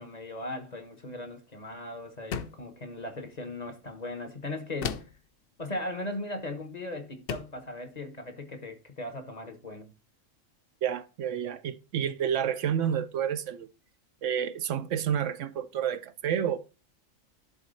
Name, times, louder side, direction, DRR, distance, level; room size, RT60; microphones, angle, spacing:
voice 1, 0.0-5.1 5.6-9.9, left 1 dB, 35° left, 1.1 m, -38 dB
sound 1, 2.3-2.7 4.8-5.3 6.6-6.7 7.3-7.6, left 7 dB, 55° left, 0.7 m, -35 dB
voice 2, 10.8-13.7 14.2-16.6, right 9 dB, 70° right, 0.9 m, -29 dB
11.0 x 4.2 x 4.0 m
omnidirectional pair, 1.4 m